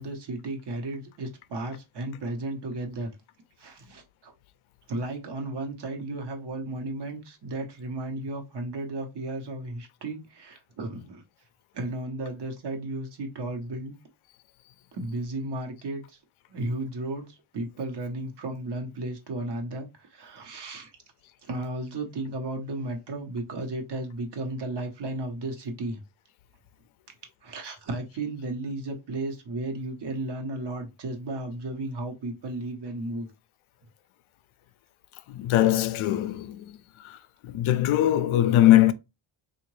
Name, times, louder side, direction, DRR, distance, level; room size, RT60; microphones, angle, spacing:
voice 1, 0.0-3.1 3.6-4.3 4.9-11.2 11.7-14.0 14.9-16.0 16.5-20.9 21.5-26.0 27.4-33.3, right 2 dB, 55° right, 1.1 m, -34 dB
voice 2, 35.3-36.6 37.0-37.2 37.4-38.9, left 13 dB, 75° left, 0.5 m, -21 dB
3.7 x 2.5 x 3.1 m
cardioid pair, 125°, 50 cm